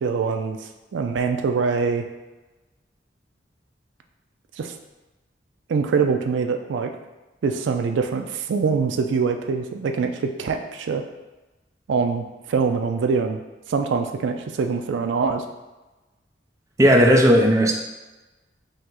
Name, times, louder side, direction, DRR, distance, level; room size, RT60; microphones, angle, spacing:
voice 1, 0.0-0.6 0.9-2.1 4.6-4.8 5.7-6.9 7.4-11.0 11.9-13.4 13.7-15.4, right 5 dB, 80° right, 5 dB, 0.4 m, -24 dB
voice 2, 16.8-17.7, equal, 15° right, 0 dB, 0.4 m, -15 dB
5.3 x 2.1 x 3.7 m, 1.1 s
head